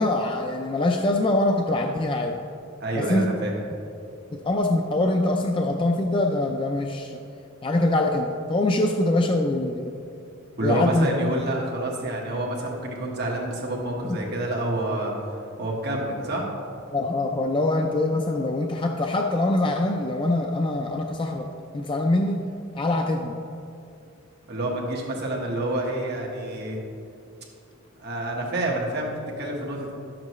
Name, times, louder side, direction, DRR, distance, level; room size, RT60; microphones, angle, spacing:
voice 1, 0.0-2.4 3.0-3.3 4.3-7.2 7.6-10.0 10.6-11.3 14.1-14.2 16.9-21.5 21.7-22.4 22.7-23.3, left 2 dB, 25° left, 2 dB, 0.4 m, -24 dB
voice 2, 2.8-3.5 10.6-15.1 15.6-16.5 24.5-26.8 28.0-29.9, right 1 dB, 50° right, -2 dB, 1.4 m, -28 dB
11.5 x 7.6 x 3.1 m, 2.5 s
head